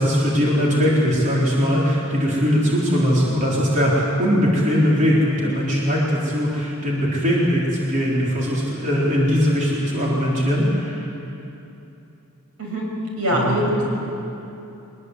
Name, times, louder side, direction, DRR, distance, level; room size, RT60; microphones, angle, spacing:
voice 1, 0.0-11.1 13.3-13.6, equal, 35° right, -5 dB, 4.0 m, -20 dB
voice 2, 13.2-13.8, equal, 80° right, -1 dB, 6.4 m, -22 dB
23.5 x 20.5 x 8.2 m, 2.9 s
head